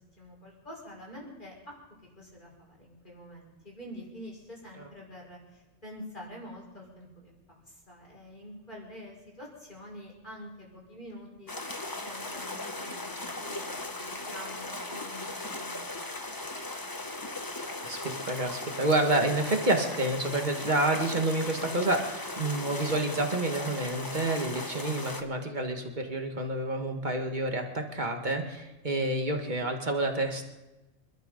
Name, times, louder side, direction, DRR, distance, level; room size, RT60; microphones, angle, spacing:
voice 1, 0.2-11.7 12.0-15.9 16.4-16.5, equal, 40° left, -3 dB, 5.8 m, -47 dB
sound 1, 11.5-25.2, left 2 dB, 20° left, 0.9 m, -38 dB
voice 2, 17.6-30.4, right 2 dB, 40° right, 3 dB, 1.9 m, -29 dB
27.5 x 12.5 x 3.9 m, 1.0 s
omnidirectional pair, 1.2 m